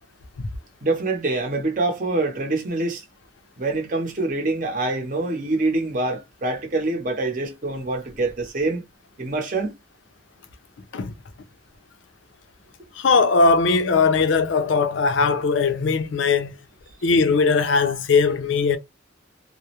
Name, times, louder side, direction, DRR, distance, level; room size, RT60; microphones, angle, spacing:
voice 1, 0.8-3.0 3.6-8.8 9.2-9.7, right 2 dB, 45° right, 0.7 m, -25 dB
voice 2, 13.0-16.5 17.0-18.8, left 4 dB, 80° left, 0.5 m, -19 dB
2.3 x 2.0 x 2.8 m
head